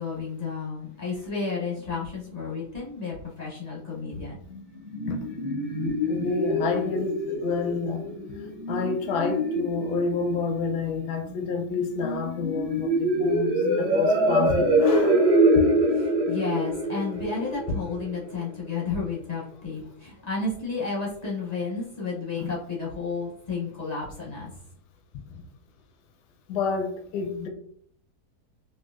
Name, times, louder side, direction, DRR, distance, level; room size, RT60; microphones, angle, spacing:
voice 1, 0.0-4.4 15.9-24.5, left 4 dB, 40° left, -5 dB, 0.5 m, -32 dB
sound 1, 4.5-18.5, right 1 dB, 25° right, 0.5 m, -25 dB
voice 2, 6.1-8.0 8.7-15.3 22.4-22.5 25.3-25.4 26.5-27.5, left 4 dB, 85° left, 4 dB, 1.2 m, -29 dB
4.4 x 2.3 x 2.4 m, 0.63 s
omnidirectional pair, 1.7 m